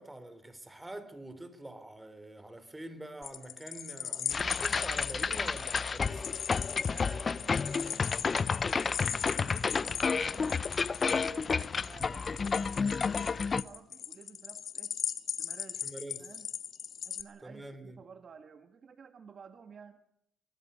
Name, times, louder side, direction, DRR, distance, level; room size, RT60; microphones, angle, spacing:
voice 1, 0.0-6.4 15.8-16.3 17.4-18.0, right 1 dB, 10° right, 3.8 m, -45 dB
sound 1, 3.2-17.2, left 8 dB, 60° left, 2.0 m, -39 dB
sound 2, 4.3-13.6, left 5 dB, 35° left, 0.8 m, -31 dB
voice 2, 6.8-9.1 9.3-15.0 15.4-15.9 16.2-16.5 17.0-20.0, right 6 dB, 50° right, 1.7 m, -53 dB
24.0 x 20.0 x 6.9 m
cardioid pair, 90°, 0 cm